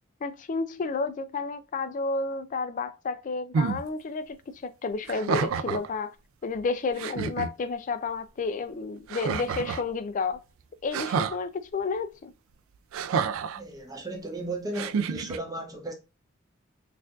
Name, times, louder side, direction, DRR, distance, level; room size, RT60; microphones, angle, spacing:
voice 1, 0.2-4.4 4.6-6.1 6.4-10.4 10.8-12.3, left 4 dB, 40° left, 0.3 m, -31 dB
sound 1, 3.5-3.8 5.0-5.9 6.6-6.7 7.0-7.5 9.1-9.9 10.9-11.4 12.9-13.6 14.7-15.4, right 6 dB, 85° right, 0.3 m, -29 dB
voice 2, 13.5-15.9, right 2 dB, 20° right, 0.8 m, -35 dB
4.3 x 2.5 x 2.3 m
head